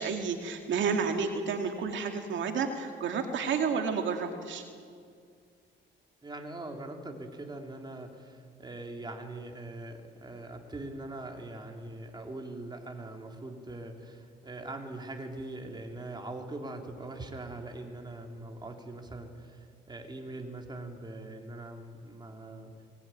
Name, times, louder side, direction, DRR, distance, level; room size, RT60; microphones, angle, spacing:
voice 1, 0.0-4.6, right 5 dB, 70° right, 4 dB, 2.3 m, -30 dB
voice 2, 6.2-22.7, right 2 dB, 20° right, 2 dB, 3.5 m, -42 dB
22.5 x 19.5 x 9.4 m, 2.2 s
cardioid pair, 90°, 20 cm